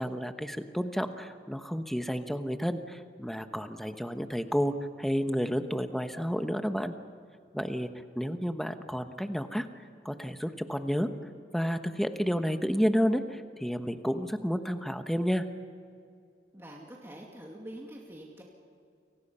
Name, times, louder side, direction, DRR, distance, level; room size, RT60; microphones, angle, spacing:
voice 1, 0.0-6.9 7.5-7.9 8.1-9.7 10.0-11.1 11.5-15.4, equal, ahead, 7 dB, 1.1 m, -31 dB
voice 2, 16.5-18.4, right 1 dB, 15° right, -2 dB, 2.4 m, -45 dB
29.5 x 24.5 x 5.6 m, 2.4 s
head